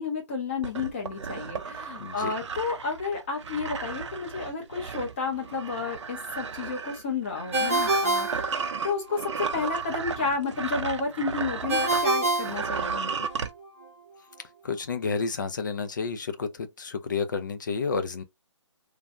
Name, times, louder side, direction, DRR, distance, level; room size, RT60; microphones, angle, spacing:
voice 1, 0.0-8.5 8.8-13.1, left 4 dB, 25° left, 0.9 m, -31 dB
sound 1, 0.6-12.1 12.4-13.5, right 5 dB, 70° right, 0.6 m, -34 dB
voice 2, 2.0-2.3 14.6-18.2, left 5 dB, 40° left, 0.4 m, -30 dB
Ringtone, 7.5-9.2 11.7-13.4, right 1 dB, 25° right, 0.8 m, -26 dB
3.2 x 2.2 x 2.4 m
hypercardioid pair, 175°, 16 cm